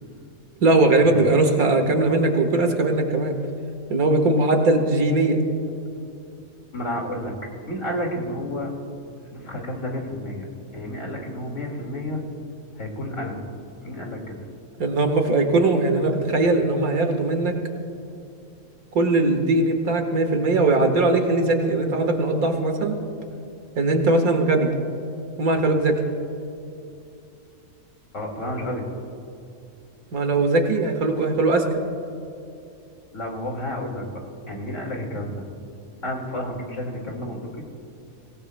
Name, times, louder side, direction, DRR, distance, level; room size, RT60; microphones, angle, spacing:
voice 1, 0.6-3.3 3.9-5.4 14.8-17.6 18.9-23.0 23.8-24.7 25.4-26.0 30.1-31.6, right 2 dB, 90° right, 5 dB, 1.9 m, -20 dB
voice 2, 6.7-7.3 7.7-8.7 9.2-10.5 10.7-12.2 12.8-13.4 13.8-14.4 28.1-28.8 33.1-34.1 34.5-35.5 36.0-37.6, left 1 dB, 60° left, 0 dB, 2.5 m, -31 dB
24.0 x 18.0 x 2.2 m, 2.7 s
omnidirectional pair, 1.5 m